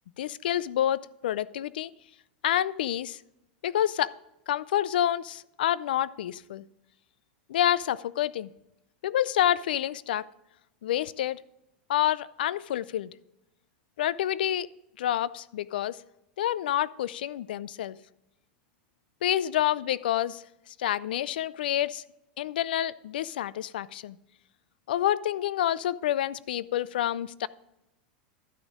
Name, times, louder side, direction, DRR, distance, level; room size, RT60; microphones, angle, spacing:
voice 1, 0.2-1.9 2.4-3.2 3.6-4.1 4.5-6.6 7.5-8.5 9.0-10.3 10.8-11.4 11.9-13.1 14.0-14.7 15.0-16.0 16.4-18.0 19.2-22.0 22.4-24.2 24.9-27.5, left 11 dB, 80° left, 20 dB, 0.4 m, -28 dB
12.0 x 6.2 x 5.0 m, 0.87 s
hypercardioid pair, 110°, 5 cm